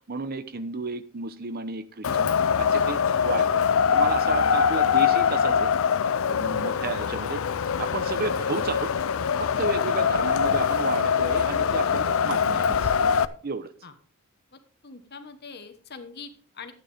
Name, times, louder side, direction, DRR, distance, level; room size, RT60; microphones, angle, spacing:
voice 1, 0.1-2.3 2.6-3.6 3.9-5.7 6.3-7.4 7.8-8.9 9.4-12.9 13.4-13.7, right 4 dB, 45° right, 12 dB, 0.8 m, -32 dB
Wind, 2.0-13.3, left 7 dB, 65° left, 0.5 m, -23 dB
voice 2, 6.4-6.8 8.2-8.4 9.9-10.2 11.5-12.5 13.8-13.9 14.5-16.7, left 4 dB, 50° left, 8 dB, 1.3 m, -44 dB
11.5 x 9.0 x 3.5 m, 0.43 s
head